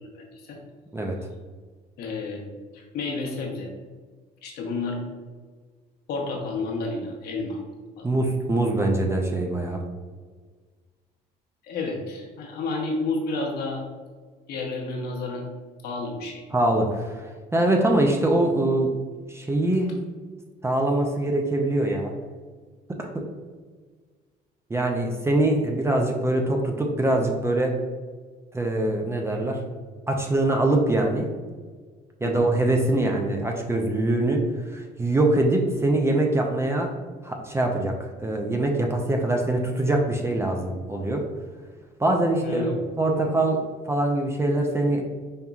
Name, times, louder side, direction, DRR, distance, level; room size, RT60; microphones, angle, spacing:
voice 1, 0.1-0.6 2.0-2.4 2.7-3.7 4.4-5.0 6.1-7.6 8.0-8.1 11.6-13.8 14.5-15.5 15.8-16.4 32.2-32.5 42.4-42.8, left 3 dB, 70° left, 0 dB, 1.0 m, -30 dB
voice 2, 8.0-9.8 16.5-18.9 19.3-19.9 20.6-22.1 22.9-23.3 24.7-27.8 28.5-29.6 30.1-31.3 32.2-37.0 37.2-41.3 42.0-42.7 43.0-45.0, right 1 dB, 15° right, 1 dB, 0.5 m, -23 dB
5.3 x 2.8 x 2.4 m, 1.5 s
cardioid pair, 110°, 17 cm